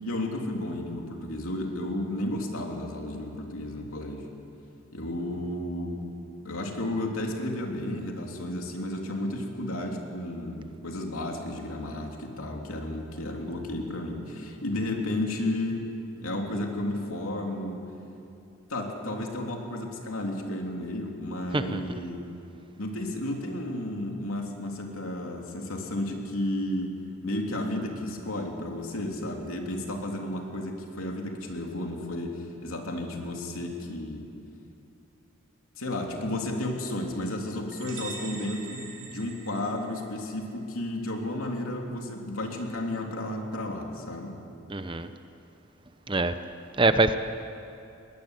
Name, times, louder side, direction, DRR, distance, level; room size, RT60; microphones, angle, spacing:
voice 1, 0.0-4.3 4.9-6.0 6.4-15.9 16.2-17.8 18.7-22.2 22.8-27.0 27.2-34.3 35.8-44.4, left 1 dB, 90° left, 1 dB, 3.2 m, -32 dB
sound 1, 37.7-40.3, right 4 dB, 65° right, 2.7 m, -42 dB
voice 2, 44.7-45.1 46.1-46.4 46.8-47.2, right 2 dB, 25° right, 10 dB, 0.7 m, -24 dB
21.0 x 19.0 x 8.2 m, 2.8 s
head